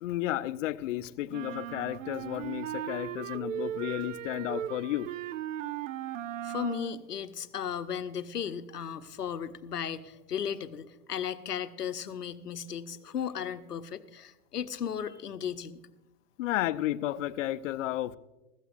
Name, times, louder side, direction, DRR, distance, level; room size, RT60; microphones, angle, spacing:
voice 1, 0.0-5.1 16.4-18.2, left 14 dB, 55° left, 0.7 m, -32 dB
sound 1, 1.3-7.0, right 11 dB, 60° right, 0.6 m, -37 dB
voice 2, 6.4-15.8, left 8 dB, 85° left, 0.9 m, -35 dB
20.5 x 15.0 x 2.5 m
hypercardioid pair, 110°, 45 cm